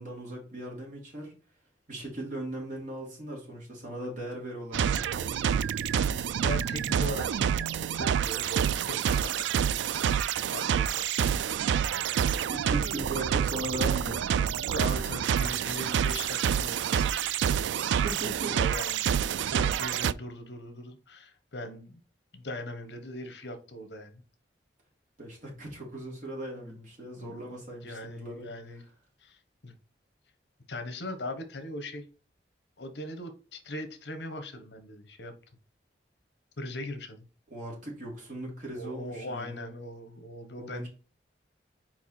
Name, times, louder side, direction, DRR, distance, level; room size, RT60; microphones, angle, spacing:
voice 1, 0.0-1.3 1.9-5.7 12.5-14.5 17.9-18.6 25.2-28.5 37.5-39.6 40.6-40.9, right 1 dB, 45° right, 2.9 m, -39 dB
sound 1, 4.7-20.1, right 8 dB, 90° right, 0.3 m, -28 dB
voice 2, 6.4-9.5 10.5-11.3 13.1-13.4 14.7-17.2 18.5-19.1 19.5-22.0 22.3-24.2 27.2-27.4 27.8-28.8 29.2-29.8 30.7-32.1 32.8-35.3 36.6-37.2 38.7-40.9, left 1 dB, 75° left, 1.2 m, -40 dB
4.7 x 4.6 x 4.3 m
head